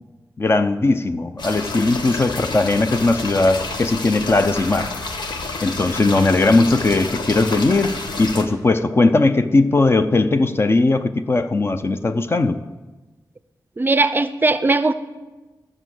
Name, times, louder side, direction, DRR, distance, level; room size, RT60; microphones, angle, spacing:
voice 1, 0.4-4.9 5.6-12.6, left 2 dB, 35° left, 0.6 m, -18 dB
sound 1, 1.4-8.4, left 3 dB, 90° left, 1.3 m, -29 dB
voice 2, 13.8-14.9, right 3 dB, 30° right, 0.5 m, -18 dB
13.5 x 6.3 x 7.8 m
wide cardioid pair, 140°, 7 cm